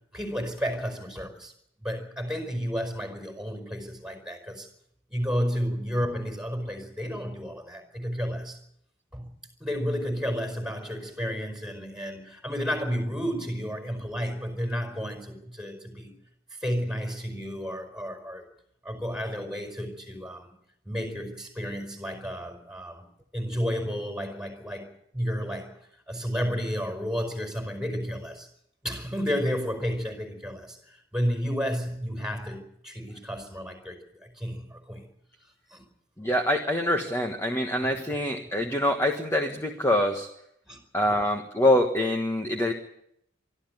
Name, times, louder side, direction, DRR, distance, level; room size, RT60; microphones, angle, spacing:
voice 1, 0.1-1.5 1.8-4.7 5.1-8.6 9.1-9.3 9.6-16.1 16.5-18.5 18.8-20.5 20.8-23.0 23.3-25.8 26.1-28.5 28.8-35.1 35.7-35.9 37.8-38.0 40.7-40.8, equal, 5° right, 6 dB, 5.1 m, -32 dB
voice 2, 36.2-40.3 40.9-42.7, left 1 dB, 15° left, 3 dB, 1.5 m, -25 dB
24.5 x 13.5 x 9.3 m, 0.73 s
head